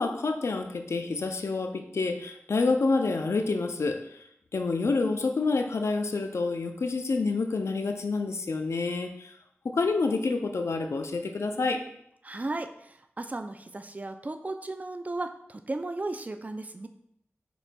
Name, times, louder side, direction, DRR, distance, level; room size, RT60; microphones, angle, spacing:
voice 1, 0.0-4.0 4.5-9.3 9.6-11.8, left 3 dB, 80° left, 6 dB, 0.4 m, -28 dB
voice 2, 12.2-16.9, right 2 dB, 35° right, 7 dB, 0.3 m, -35 dB
4.5 x 4.0 x 2.2 m, 0.74 s
wide cardioid pair, 55°, 5 cm